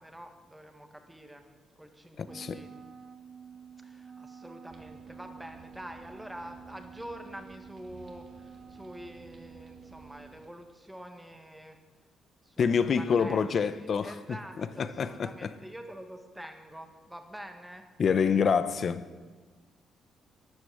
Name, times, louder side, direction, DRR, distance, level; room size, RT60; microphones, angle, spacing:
voice 1, 0.0-1.5 1.7-2.7 3.8-11.8 12.4-17.9, equal, 5° right, 1.6 m, -46 dB
voice 2, 2.2-2.6 12.6-14.1 14.8-15.5 18.0-19.0, left 6 dB, 45° left, 0.8 m, -26 dB
Wind instrument woodwind instrument, 2.2-10.4, right 6 dB, 25° right, 1.1 m, -50 dB
sound 1, 4.7-10.5, right 3 dB, 40° right, 2.2 m, -56 dB
13.0 x 11.0 x 7.8 m
cardioid pair, 125°, 0 cm